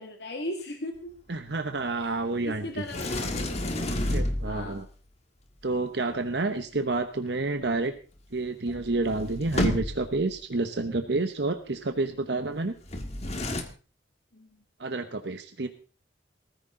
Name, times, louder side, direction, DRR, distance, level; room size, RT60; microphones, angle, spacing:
voice 1, 0.0-1.1 2.0-3.7 4.4-4.8 14.3-14.6, left 1 dB, 65° left, 3 dB, 2.3 m, -38 dB
voice 2, 1.3-2.8 4.1-4.8 5.6-7.9 8.3-12.7 14.8-15.7, right 2 dB, 70° right, 7 dB, 1.1 m, -29 dB
Sliding door, 2.9-4.8 8.4-8.5 8.7-10.2 12.9-13.6, left 1 dB, 35° left, 1.9 m, -30 dB
20.0 x 14.5 x 3.8 m, 0.37 s
head